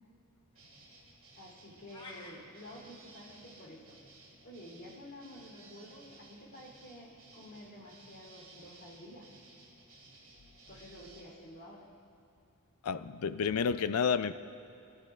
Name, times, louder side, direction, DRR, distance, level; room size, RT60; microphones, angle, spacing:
sound 1, 0.5-11.2, right 2 dB, 65° right, 2.5 m, -57 dB
voice 1, 1.4-4.0 4.4-9.3 10.7-11.9, equal, 50° left, -3 dB, 3.2 m, -51 dB
sound 2, 1.9-2.4, left 2 dB, 20° left, 0.9 m, -48 dB
voice 2, 12.8-14.3, left 6 dB, 80° left, 12 dB, 0.4 m, -30 dB
23.5 x 12.0 x 2.5 m, 2.6 s
head